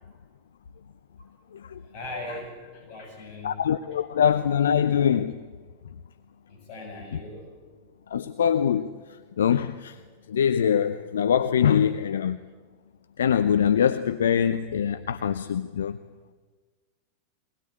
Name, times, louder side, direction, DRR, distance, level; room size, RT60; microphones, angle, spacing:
voice 1, 1.9-3.6 6.5-7.4, left 2 dB, 40° left, 7.9 m, -39 dB
voice 2, 3.4-5.4 8.1-8.9 9.4-10.0 10.3-12.4 13.2-16.0, left 8 dB, 65° left, 0.7 m, -23 dB
23.0 x 20.0 x 8.8 m
figure-of-eight pair, 90°, 0 cm